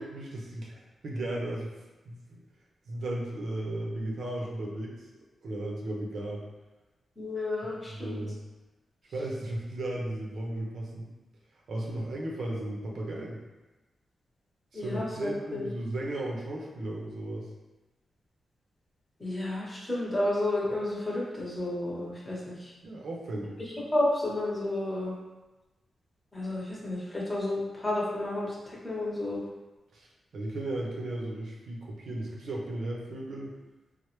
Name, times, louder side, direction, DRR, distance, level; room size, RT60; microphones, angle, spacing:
voice 1, 0.1-2.4 2.9-6.4 7.9-8.4 9.1-11.1 11.7-13.4 14.7-17.5 22.8-23.6 29.9-33.5, right 1 dB, 70° right, -2 dB, 0.5 m, -35 dB
voice 2, 7.2-8.2 14.7-15.7 19.2-22.7 23.9-25.1 26.3-29.4, left 1 dB, 20° left, -5 dB, 0.8 m, -31 dB
3.1 x 2.0 x 3.0 m, 1.1 s
wide cardioid pair, 125°, 0 cm